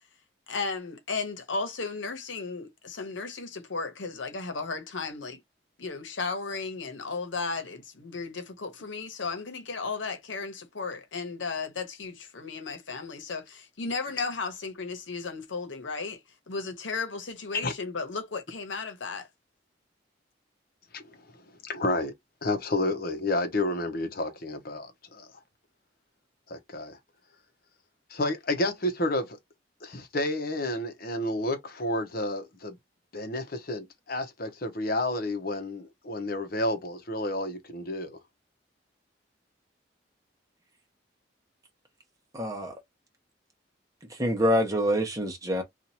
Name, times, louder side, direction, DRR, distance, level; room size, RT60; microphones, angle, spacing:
voice 1, 0.5-5.4 5.8-19.3, left 4 dB, 85° left, 1.0 m, -35 dB
voice 2, 21.3-22.1 22.4-25.3 26.5-27.0 28.1-29.4 29.8-32.8 33.1-38.2, left 1 dB, 50° left, 0.9 m, -30 dB
voice 3, 42.3-42.7 44.1-45.6, equal, 20° right, 1.0 m, -26 dB
2.8 x 2.5 x 4.2 m
head